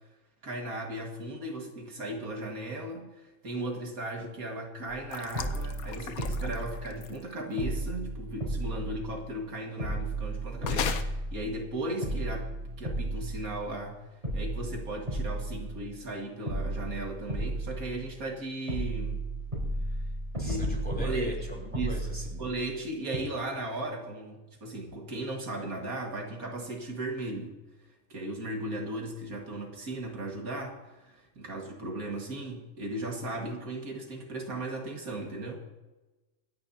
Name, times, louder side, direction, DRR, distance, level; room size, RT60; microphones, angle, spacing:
voice 1, 0.4-12.5 12.8-14.0 14.3-19.2 20.3-20.7 21.0-21.4 21.7-22.0 22.4-27.6 28.1-35.6, right 1 dB, 80° right, 1 dB, 2.4 m, -36 dB
sound 1, 5.0-5.1 5.3-7.3 7.6-9.5 9.8-11.7 12.0-13.9 14.2-16.1 16.5-18.4 18.7-22.8 23.1-23.2, right 1 dB, 25° right, 4.3 m, -34 dB
sound 2, 5.1-7.3 10.6-11.0, left 7 dB, 80° left, 1.3 m, -36 dB
voice 2, 20.4-22.4, left 1 dB, 5° left, -2 dB, 3.2 m, -39 dB
25.5 x 10.5 x 2.8 m, 1.1 s
omnidirectional pair, 1.5 m